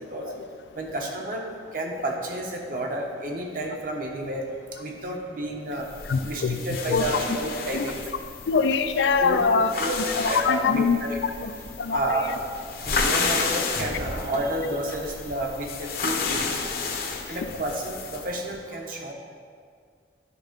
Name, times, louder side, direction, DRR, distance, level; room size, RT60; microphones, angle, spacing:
voice 1, 0.7-1.5 1.7-5.9 6.2-8.0 9.2-11.2 11.9-12.4 12.8-16.5 17.3-19.1, right 1 dB, 50° right, 1 dB, 1.0 m, -31 dB
sound 1, 5.8-18.4, left 4 dB, 60° left, 0.7 m, -31 dB
voice 2, 6.1-6.6 6.9-7.0 7.7-7.8 8.5-9.7 10.2-11.0 11.4-11.5 11.8-12.0, left 5 dB, 90° left, 10 dB, 0.4 m, -23 dB
9.9 x 3.6 x 5.1 m, 2.1 s
head